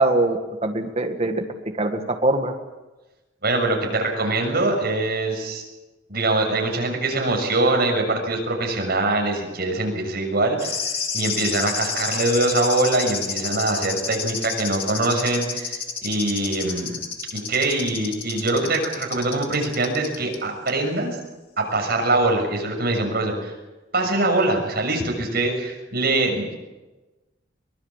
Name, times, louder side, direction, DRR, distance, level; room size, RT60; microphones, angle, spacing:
voice 1, 0.0-1.5 1.8-2.5, right 2 dB, 35° right, 4 dB, 1.8 m, -22 dB
voice 2, 3.4-5.6 6.1-10.8 11.1-17.0 17.3-21.2 21.6-23.5 23.9-26.5, right 2 dB, 50° right, 2 dB, 6.6 m, -23 dB
sound 1, 10.6-20.4 20.7-20.8, left 6 dB, 30° left, 2.6 m, -30 dB
24.0 x 20.0 x 7.4 m, 1.1 s
head